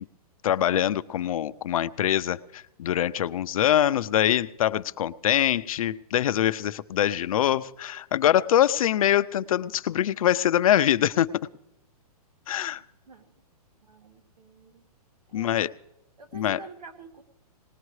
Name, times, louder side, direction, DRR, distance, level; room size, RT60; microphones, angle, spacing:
voice 1, 0.4-11.3 12.5-12.8 15.3-15.7 16.3-16.6, left 11 dB, 60° left, 13 dB, 0.6 m, -24 dB
voice 2, 13.8-14.8 15.3-15.6 16.2-17.2, right 3 dB, 90° right, 7 dB, 2.0 m, -47 dB
21.0 x 19.5 x 3.2 m, 0.84 s
hypercardioid pair, 160°, 20 cm